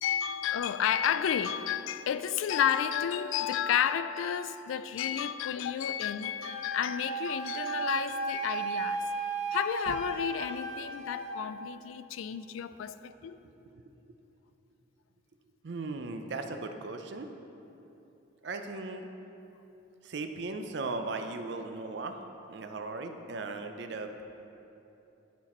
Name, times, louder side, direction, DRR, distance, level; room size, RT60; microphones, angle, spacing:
voice 1, 0.0-9.0 9.5-13.4, left 9 dB, 80° left, 12 dB, 0.3 m, -31 dB
Wind instrument woodwind instrument, 6.4-11.4, right 3 dB, 30° right, 0.9 m, -35 dB
voice 2, 15.6-17.3 18.4-19.1 20.0-22.2 22.5-24.2, right 3 dB, 60° right, 6 dB, 0.5 m, -37 dB
11.5 x 4.2 x 4.2 m, 2.9 s
head